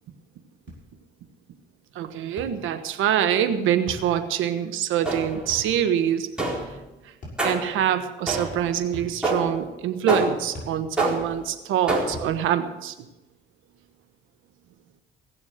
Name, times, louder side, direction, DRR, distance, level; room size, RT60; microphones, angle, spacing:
sound 1, 0.7-0.9 2.4-2.6 3.9-4.1 5.5-5.7 7.2-7.5 8.9-9.2 10.5-10.8 12.1-12.4, left 1 dB, 40° left, 7.0 m, -39 dB
voice 1, 1.9-6.3 7.4-12.9, right 9 dB, 90° right, 9 dB, 1.2 m, -25 dB
sound 2, 5.0-5.6 6.4-6.8 7.4-7.8 8.3-8.7 9.2-9.6 10.1-10.5 11.0-11.4 11.9-12.3, right 2 dB, 5° right, 4.2 m, -27 dB
17.5 x 7.1 x 8.0 m, 1.0 s
cardioid pair, 90°, 20 cm